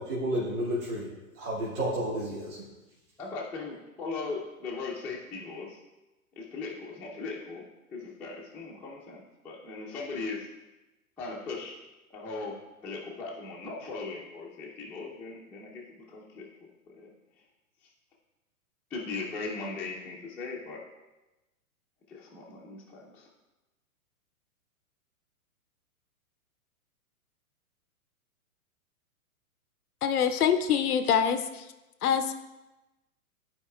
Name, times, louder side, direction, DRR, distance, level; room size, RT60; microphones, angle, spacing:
voice 1, 0.1-1.1 1.4-2.6, equal, 55° right, -8 dB, 2.3 m, -31 dB
voice 2, 3.2-5.8 6.4-7.6 7.9-10.5 11.2-11.7 12.1-16.5 16.9-17.1 18.9-20.8 22.1-23.3, left 3 dB, 5° left, -8 dB, 0.5 m, -38 dB
voice 3, 30.0-31.7 32.0-32.3, left 8 dB, 80° left, 9 dB, 0.6 m, -25 dB
11.0 x 4.7 x 2.3 m, 1.0 s
hypercardioid pair, 120°, 44 cm